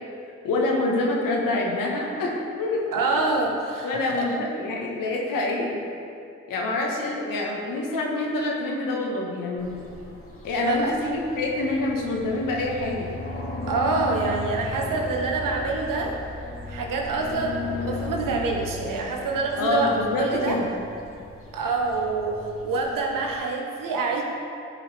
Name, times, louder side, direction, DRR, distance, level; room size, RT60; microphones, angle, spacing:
voice 1, 0.4-3.4 3.8-5.8 6.5-9.7 10.4-13.1 19.6-20.7, left 2 dB, 85° left, -1 dB, 1.2 m, -26 dB
voice 2, 2.9-4.3 10.7-10.9 13.7-16.2 16.7-20.6 21.5-24.2, right 3 dB, 80° right, 1 dB, 1.2 m, -26 dB
sound 1, 9.6-23.3, left 2 dB, 40° left, 1.8 m, -36 dB
12.5 x 5.2 x 3.3 m, 2.5 s
supercardioid pair, 40°, 32 cm